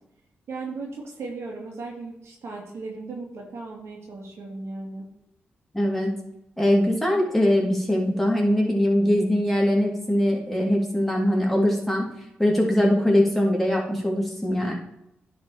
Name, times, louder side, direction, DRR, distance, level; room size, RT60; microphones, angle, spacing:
voice 1, 0.5-5.0, right 3 dB, 70° right, -1 dB, 2.1 m, -36 dB
voice 2, 5.7-6.1 6.6-12.1 12.4-14.7, left 1 dB, 5° left, -2 dB, 2.9 m, -22 dB
10.0 x 4.3 x 4.8 m, 0.80 s
supercardioid pair, 50°, 5 cm